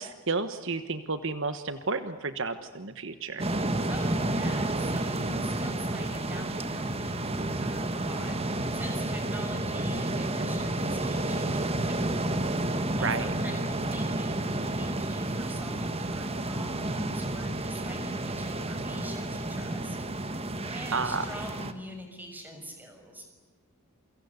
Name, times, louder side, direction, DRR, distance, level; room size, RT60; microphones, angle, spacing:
voice 1, 0.0-3.5 13.0-13.3 20.9-21.3, right 4 dB, 60° right, 10 dB, 1.3 m, -31 dB
sound 1, 3.4-21.7, right 1 dB, 25° right, 1.6 m, -31 dB
voice 2, 3.9-12.4 12.7-20.0 20.6-23.3, equal, 10° right, 4 dB, 6.5 m, -44 dB
29.0 x 24.5 x 8.3 m, 1.3 s
head